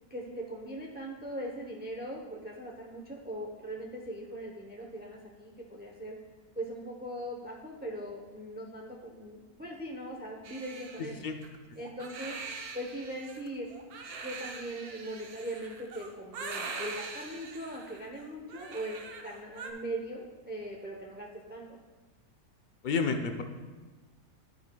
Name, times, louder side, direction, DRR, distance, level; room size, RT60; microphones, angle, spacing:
voice 1, 0.1-6.2 6.6-11.3 11.7-12.4 12.7-13.7 14.2-21.8, right 1 dB, 15° right, -1 dB, 0.4 m, -40 dB
Crying sobbing, 10.4-19.7, right 4 dB, 75° right, 1.3 m, -43 dB
voice 2, 22.8-23.4, left 5 dB, 55° left, 5 dB, 0.5 m, -29 dB
12.0 x 9.4 x 2.3 m, 1.2 s
omnidirectional pair, 1.6 m